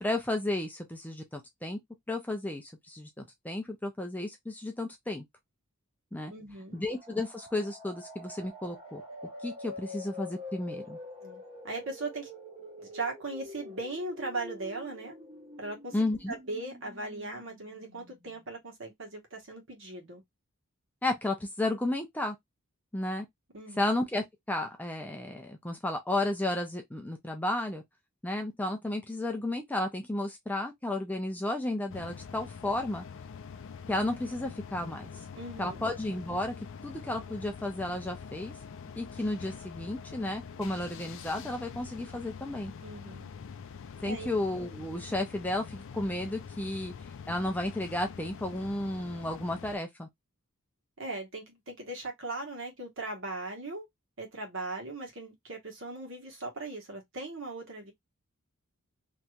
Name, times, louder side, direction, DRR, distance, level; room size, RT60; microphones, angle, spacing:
voice 1, 0.0-1.8 2.1-5.2 6.1-6.3 6.7-9.0 9.4-11.0 15.9-16.4 21.0-22.4 22.9-23.3 23.8-27.8 28.2-33.0 33.9-35.1 35.6-36.5 36.8-38.5 39.0-42.7 44.0-46.9 47.3-50.1, left 1 dB, 5° left, 0.5 m, -33 dB
voice 2, 6.3-6.8 11.2-12.3 12.8-15.2 15.6-15.9 16.3-20.2 23.5-23.8 35.4-35.8 42.8-43.3 44.0-44.3 51.0-53.9 54.2-57.9, right 2 dB, 60° right, 1.3 m, -39 dB
sound 1, 6.8-18.4, left 1 dB, 25° right, 0.9 m, -46 dB
sound 2, 31.9-49.8, left 6 dB, 60° left, 0.4 m, -45 dB
3.1 x 2.8 x 2.3 m
head